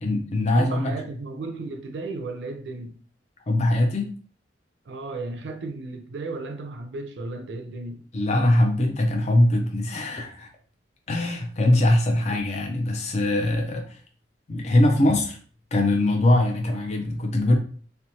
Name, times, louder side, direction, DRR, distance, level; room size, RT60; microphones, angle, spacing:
voice 1, 0.0-1.0 3.5-4.1 8.1-10.5 11.1-14.0 14.5-15.4 15.7-17.6, left 1 dB, 40° left, 0.4 m, -22 dB
voice 2, 0.5-3.0 4.9-8.0, right 3 dB, 75° right, 0.4 m, -34 dB
2.9 x 2.1 x 2.7 m
head